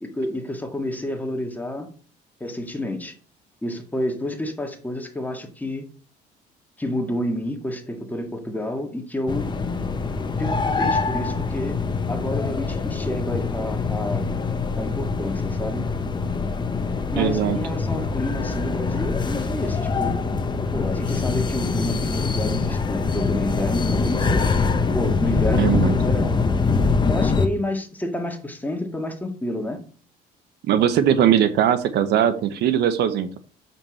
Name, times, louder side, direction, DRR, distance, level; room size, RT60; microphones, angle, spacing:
voice 1, 0.0-1.9 2.4-3.1 3.6-5.8 6.8-9.5 10.4-14.3 14.7-15.9 17.1-20.2 20.7-24.5 24.9-26.4 27.1-29.8, left 1 dB, 10° left, 1.9 m, -29 dB
sound 1, 9.3-27.5, left 4 dB, 25° left, 1.0 m, -24 dB
voice 2, 17.1-17.6 25.6-25.9 30.6-33.4, right 9 dB, 70° right, 0.8 m, -20 dB
7.2 x 5.5 x 4.2 m
cardioid pair, 90°, 18 cm